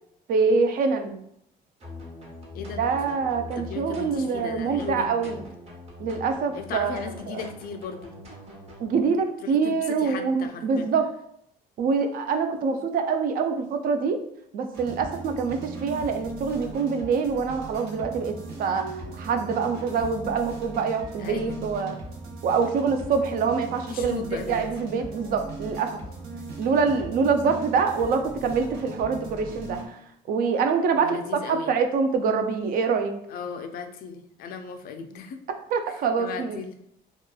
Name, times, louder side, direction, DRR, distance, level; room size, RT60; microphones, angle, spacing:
voice 1, 0.3-1.2 2.8-5.4 6.0-7.4 8.8-11.1 11.8-14.2 14.5-21.9 22.4-24.2 24.5-26.0 26.6-30.0 30.3-33.1 35.7-36.6, right 5 dB, 60° right, 7 dB, 0.4 m, -25 dB
sound 1, 1.8-8.9, left 2 dB, 35° right, 0.9 m, -42 dB
voice 2, 3.6-5.4 6.5-8.2 9.4-10.9 21.2-21.6 23.9-24.7 30.9-31.7 33.3-35.4 35.9-36.7, left 6 dB, 60° left, 6 dB, 0.4 m, -36 dB
sound 2, 14.7-29.9, right 2 dB, 85° right, 0.8 m, -38 dB
2.8 x 2.2 x 2.2 m, 0.73 s
cardioid pair, 110°, 17 cm